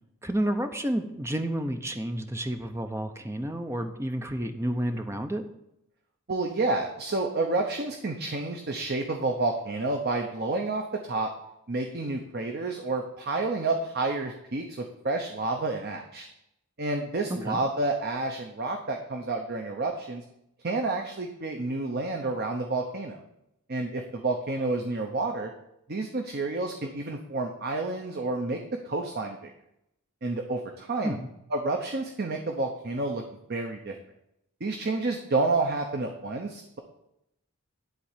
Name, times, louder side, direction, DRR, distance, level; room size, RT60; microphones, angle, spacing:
voice 1, 0.2-5.5 17.3-17.6 31.0-31.3, right 1 dB, 10° right, 6 dB, 0.7 m, -30 dB
voice 2, 6.3-11.3 11.7-16.3 16.8-20.2 20.6-23.2 23.7-25.5 25.9-29.5 30.2-31.2 31.5-33.2 33.5-33.9 34.6-36.8, right 3 dB, 45° right, 3 dB, 0.8 m, -29 dB
11.5 x 3.9 x 7.2 m, 0.82 s
head